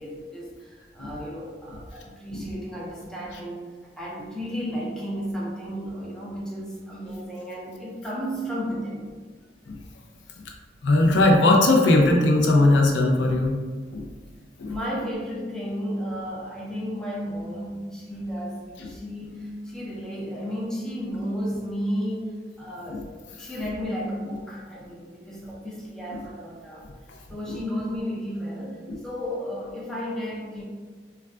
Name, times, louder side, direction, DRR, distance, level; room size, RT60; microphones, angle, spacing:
voice 1, 0.0-9.1 14.7-23.1 23.4-26.8 27.3-30.6, equal, 5° left, -5 dB, 0.5 m, -33 dB
voice 2, 10.8-13.6 13.9-14.0 14.6-14.7 18.8-18.9 22.9-23.0 27.5-27.6, left 2 dB, 90° left, 1 dB, 0.5 m, -19 dB
2.2 x 2.2 x 3.5 m, 1.5 s
head